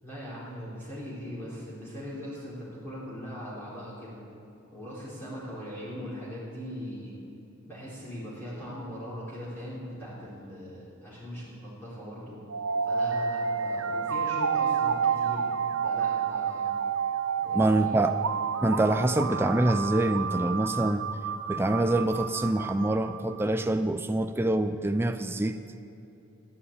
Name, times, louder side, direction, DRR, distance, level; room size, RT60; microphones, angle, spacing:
voice 1, 0.0-4.2 4.7-7.1 7.6-12.4 12.8-15.5 15.8-16.7 17.4-18.0, equal, 10° left, -10 dB, 3.9 m, -40 dB
sound 1, 12.5-23.4, right 6 dB, 65° right, 0.6 m, -30 dB
voice 2, 17.5-18.2 18.6-21.1 21.5-25.6, right 1 dB, 10° right, 8 dB, 0.4 m, -25 dB
17.0 x 9.6 x 8.8 m, 3.0 s
head